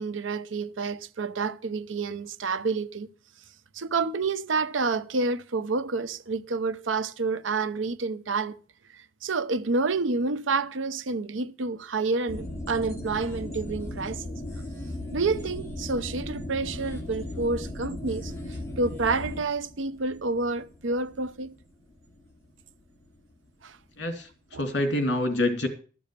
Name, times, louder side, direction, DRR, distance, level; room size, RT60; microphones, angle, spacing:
voice 1, 0.0-3.1 3.7-8.6 8.9-14.3 15.1-21.5 23.6-23.8 24.5-24.6, right 3 dB, 85° right, 0.7 m, -29 dB
sound 1, 12.3-23.2 23.4-23.5, left 1 dB, 15° left, 2.7 m, -37 dB
voice 2, 24.0-25.7, left 1 dB, 65° left, 2.8 m, -27 dB
13.0 x 7.0 x 6.7 m
head